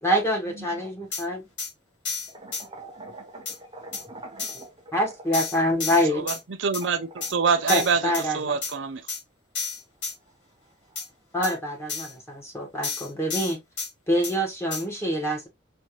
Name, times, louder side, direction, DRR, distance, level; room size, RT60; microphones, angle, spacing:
voice 1, 0.0-1.5 4.9-6.3 7.7-8.6 11.3-13.6 14.1-15.5, equal, 15° left, 1.5 m, -26 dB
sound 1, 1.1-1.2 1.6-1.7 2.0-2.6 3.5-3.6 3.9-4.0 4.4-4.6 5.3-6.4 6.7-6.8 7.2-7.3 7.7-8.3 8.6-8.7 9.1-9.2 9.5-10.1 11.0-11.1 11.4-11.5 11.9-12.1 12.8-13.9 14.2-14.3 14.7-14.8, left 5 dB, 65° left, 2.1 m, -31 dB
voice 2, 2.3-4.7, right 2 dB, 30° right, 0.8 m, -43 dB
voice 3, 6.6-8.0 8.3-9.0, right 5 dB, 85° right, 0.5 m, -25 dB
4.5 x 2.6 x 3.0 m
head